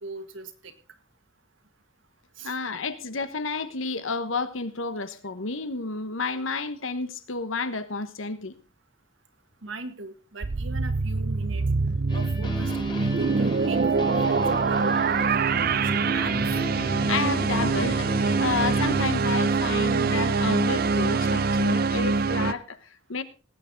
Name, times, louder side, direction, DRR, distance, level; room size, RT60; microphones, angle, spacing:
voice 1, 0.0-0.7 2.4-2.6 9.6-11.7 12.1-14.4 14.7-16.4, right 3 dB, 75° right, 1.8 m, -40 dB
voice 2, 2.4-8.5 17.1-18.1 18.4-23.2, left 4 dB, 80° left, 1.2 m, -31 dB
sound 1, 10.4-22.5, right 4 dB, 50° right, 0.6 m, -24 dB
sound 2, 12.1-19.0, equal, 25° left, 2.0 m, -35 dB
18.5 x 8.8 x 3.9 m
head